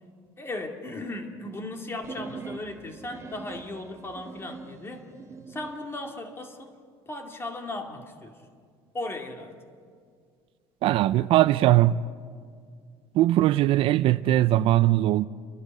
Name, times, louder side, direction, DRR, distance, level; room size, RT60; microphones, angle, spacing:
voice 1, 0.4-5.1 5.5-6.7 7.1-8.4 8.9-9.5, left 2 dB, 20° left, 2.3 m, -36 dB
sound 1, 2.0-5.8, right 4 dB, 25° right, 1.2 m, -43 dB
voice 2, 10.8-12.0 13.1-15.3, right 14 dB, 55° right, 0.5 m, -20 dB
29.5 x 12.0 x 9.4 m
cardioid pair, 120°, 11 cm